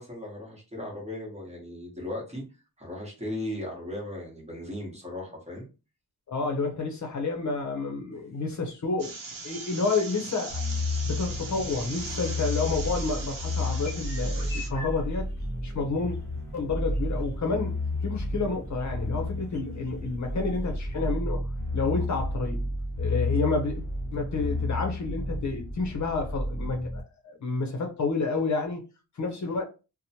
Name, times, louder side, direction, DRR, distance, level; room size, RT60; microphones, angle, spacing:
voice 1, 0.0-2.4 2.8-5.7, left 1 dB, 20° right, 1.0 m, -37 dB
voice 2, 6.3-9.1 9.4-10.6 11.1-15.3 15.6-16.2 16.5-21.5 21.7-22.6 23.0-23.8 24.1-28.8 29.2-29.6, left 3 dB, 55° left, 0.7 m, -30 dB
sound 1, 9.0-14.7, right 3 dB, 65° right, 0.7 m, -39 dB
sound 2, 10.5-27.0, left 2 dB, 5° left, 0.7 m, -32 dB
sound 3, 12.6-21.0, left 2 dB, 25° left, 1.2 m, -47 dB
2.9 x 2.1 x 2.8 m
wide cardioid pair, 155°, 36 cm